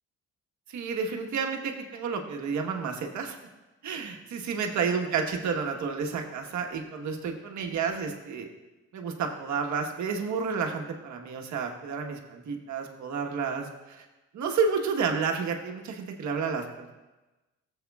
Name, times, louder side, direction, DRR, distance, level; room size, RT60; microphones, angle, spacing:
voice 1, 0.7-3.4 3.8-8.5 8.9-14.0 14.3-17.0, right 5 dB, 70° right, 3 dB, 1.3 m, -31 dB
16.5 x 7.7 x 2.4 m, 1.1 s
cardioid pair, 90°, 30 cm